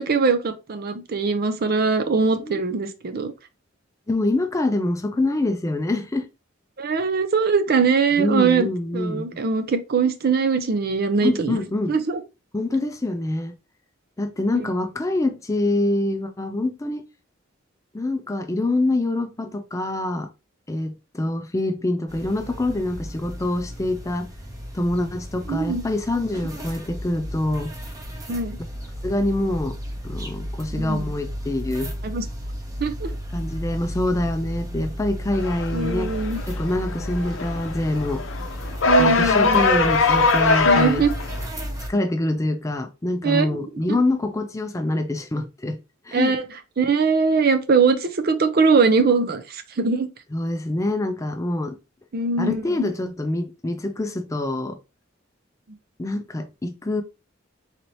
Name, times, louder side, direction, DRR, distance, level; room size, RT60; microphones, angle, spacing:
voice 1, 0.0-3.3 6.8-8.7 8.9-11.6 11.9-12.2 25.5-25.8 28.3-28.6 30.7-31.1 32.1-32.2 32.8-33.1 35.7-36.4 38.8-39.6 40.6-41.1 43.2-43.5 43.9-44.0 46.1-46.4 46.8-50.1 52.1-52.9, right 4 dB, 50° right, 0.5 m, -21 dB
voice 2, 4.1-6.3 8.2-9.3 11.2-12.0 12.5-13.6 14.2-17.0 17.9-20.3 20.7-24.3 24.7-27.7 29.0-29.8 30.0-31.9 33.3-36.1 36.5-38.2 39.0-41.0 41.9-45.8 46.1-46.4 50.3-51.8 52.4-54.8 56.0-57.0, left 2 dB, 15° left, 0.4 m, -25 dB
sound 1, 22.1-41.9, equal, 15° right, 0.8 m, -34 dB
sound 2, 35.3-41.5, left 3 dB, 80° left, 0.6 m, -22 dB
4.1 x 2.8 x 3.0 m
head